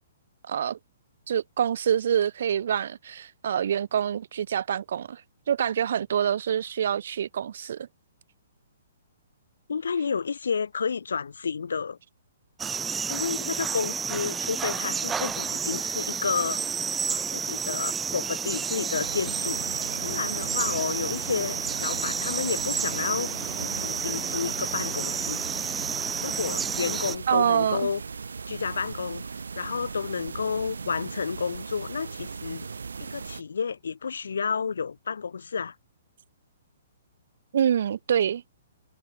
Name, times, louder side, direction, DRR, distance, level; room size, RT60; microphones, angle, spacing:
voice 1, 0.5-0.8 1.3-5.2 5.5-7.9 27.3-27.9 37.5-38.4, right 9 dB, 65° right, 0.6 m, -26 dB
voice 2, 9.7-12.0 13.1-16.6 17.1-19.6 20.0-23.3 23.6-25.4 26.2-28.0 28.5-29.3 29.5-32.7 33.0-35.7, left 6 dB, 75° left, 2.6 m, -31 dB
sound 1, 12.6-27.2, right 6 dB, 15° right, 1.1 m, -30 dB
sound 2, 18.9-33.4, right 5 dB, 80° right, 1.5 m, -38 dB
hypercardioid pair, 125°, 0 cm